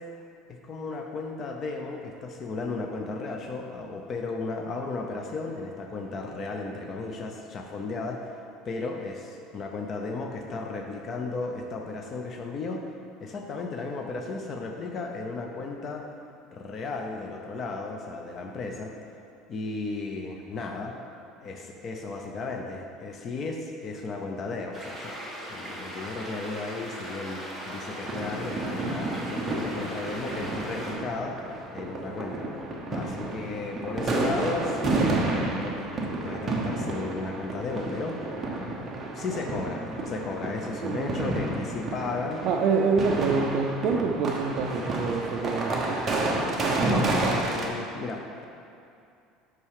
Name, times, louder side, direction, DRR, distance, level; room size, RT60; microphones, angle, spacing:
voice 1, 0.5-8.3 8.6-12.9 13.2-16.1 16.5-18.9 19.5-20.9 21.4-32.4 32.9-38.2 39.1-42.4 43.9-44.0 46.9-48.4, left 3 dB, 30° left, 2 dB, 0.6 m, -34 dB
sound 1, 24.7-31.0, equal, ahead, 1.5 m, -39 dB
sound 2, 28.0-47.7, right 2 dB, 20° right, 1.0 m, -30 dB
voice 2, 40.8-41.2 42.4-46.0 46.7-47.1, right 5 dB, 45° right, 0 dB, 0.5 m, -26 dB
8.7 x 6.1 x 4.8 m, 2.5 s
cardioid pair, 170°, 0 cm